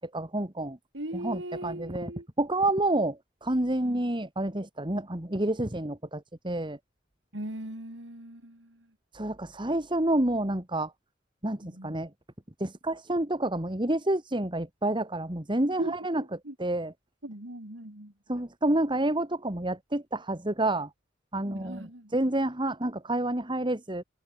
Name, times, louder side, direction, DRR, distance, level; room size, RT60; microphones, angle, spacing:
voice 1, 0.0-0.8 1.1-2.1 2.4-6.8 9.1-10.9 11.4-12.1 12.6-16.2 16.6-16.9 18.3-20.9 21.3-24.0, right 1 dB, 25° right, 2.6 m, -29 dB
voice 2, 0.9-2.3 3.8-4.0 7.3-8.9 11.6-12.0 15.8-15.9 16.4-16.5 17.2-18.1 21.4-22.1, right 1 dB, 80° right, 5.2 m, -39 dB
head